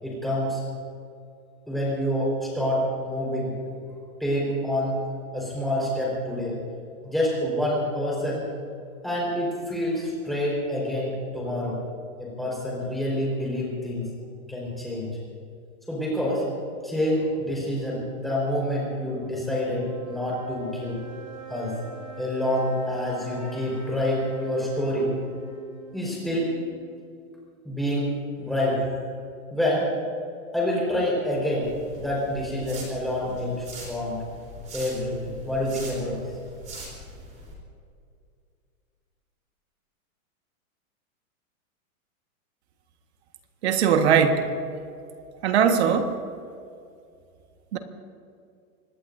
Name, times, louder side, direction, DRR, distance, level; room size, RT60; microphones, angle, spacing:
voice 1, 0.0-0.6 1.7-3.7 4.2-5.0 5.3-6.6 7.0-8.5 9.0-11.8 12.2-14.1 14.5-15.1 15.9-16.4 16.8-21.0 21.5-21.7 22.2-25.2 25.9-26.5 27.6-29.0 29.5-29.9 30.5-31.7 31.9-34.2 34.7-36.2, left 1 dB, ahead, -5 dB, 4.6 m, -27 dB
sound 1, 17.9-27.3, right 6 dB, 80° right, 4.0 m, -44 dB
sound 2, 31.6-37.5, right 2 dB, 15° right, 3.7 m, -42 dB
voice 2, 43.6-44.5 45.4-46.2 47.7-47.8, right 7 dB, 50° right, 6 dB, 1.6 m, -20 dB
25.5 x 19.5 x 2.7 m, 2.4 s
supercardioid pair, 170°, 42 cm